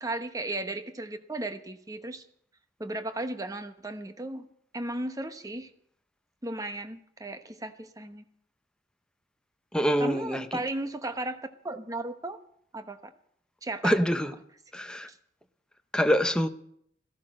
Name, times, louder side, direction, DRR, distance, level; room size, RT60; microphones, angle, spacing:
voice 1, 0.0-2.2 2.8-4.5 4.7-5.7 6.4-8.2 10.0-12.4 12.7-13.1 13.6-14.0 15.1-15.2, right 2 dB, 20° right, 8 dB, 1.0 m, -35 dB
voice 2, 9.7-10.4 13.8-14.3 14.7-15.1 15.9-16.5, equal, 5° left, 8 dB, 0.7 m, -25 dB
14.5 x 13.0 x 6.3 m, 0.68 s
head